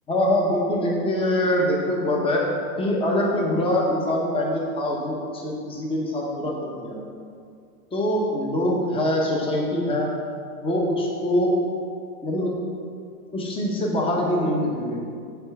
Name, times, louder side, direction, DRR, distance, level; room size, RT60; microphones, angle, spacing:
voice 1, 0.1-2.4 2.8-7.0 7.9-10.1 10.6-11.6 12.2-12.6 13.3-15.0, left 1 dB, 10° left, -2 dB, 0.9 m, -24 dB
5.5 x 4.4 x 5.3 m, 2.3 s
supercardioid pair, 135°, 45 cm